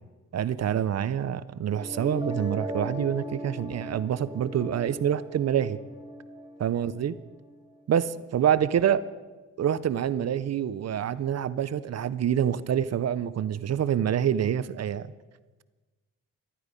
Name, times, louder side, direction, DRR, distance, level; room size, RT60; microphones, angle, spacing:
voice 1, 0.3-5.8 6.6-7.1 7.9-9.0 9.6-15.1, right 9 dB, 50° right, 16 dB, 0.6 m, -26 dB
sound 1, 1.7-7.7, equal, 15° right, 1.5 m, -38 dB
14.5 x 12.0 x 5.2 m, 1.3 s
cardioid pair, 120°, 33 cm